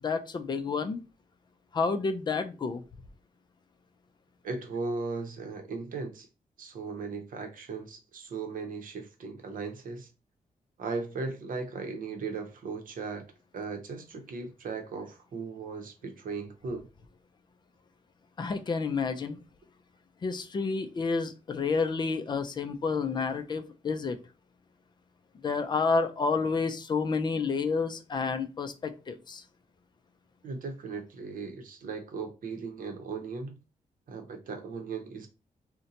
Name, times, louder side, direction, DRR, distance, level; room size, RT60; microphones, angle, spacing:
voice 1, 0.0-1.0 1.7-2.8 18.4-19.4 20.2-24.2 25.4-29.4, left 4 dB, 30° left, 0.4 m, -30 dB
voice 2, 4.4-6.3 6.6-10.1 10.8-13.2 13.5-16.9 30.4-33.6 34.1-35.3, right 4 dB, 65° right, 0.7 m, -37 dB
2.7 x 2.1 x 3.8 m
wide cardioid pair, 170°, 15 cm